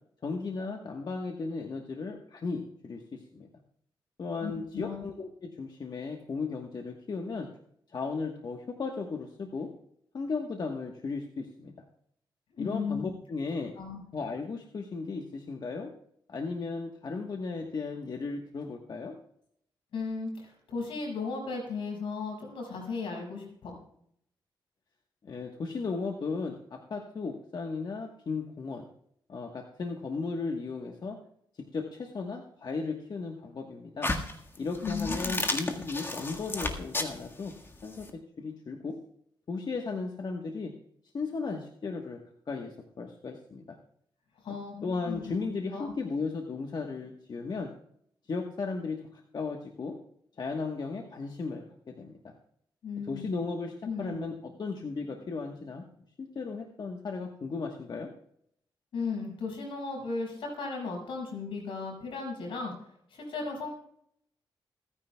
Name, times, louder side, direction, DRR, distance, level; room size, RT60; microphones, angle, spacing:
voice 1, 0.2-3.5 4.2-7.5 7.9-9.7 10.1-11.7 12.6-13.7 14.1-15.9 16.3-19.2 25.2-28.9 29.3-31.2 31.5-34.1 34.6-37.6 37.8-39.0 39.5-40.7 41.1-42.2 42.5-43.8 44.8-47.7 48.3-50.0 50.4-52.3 53.1-55.9 56.2-58.1, left 4 dB, 55° left, 3 dB, 1.3 m, -35 dB
voice 2, 4.4-5.1 12.5-13.0 13.7-14.0 19.9-23.8 34.8-35.4 44.4-45.4 45.7-45.9 52.8-53.4 53.8-54.2 58.9-63.7, left 4 dB, 85° left, 0 dB, 6.0 m, -36 dB
sound 1, 34.0-38.1, left 2 dB, 25° left, 1.7 m, -33 dB
27.5 x 10.0 x 2.3 m, 0.71 s
cardioid pair, 85°, 9 cm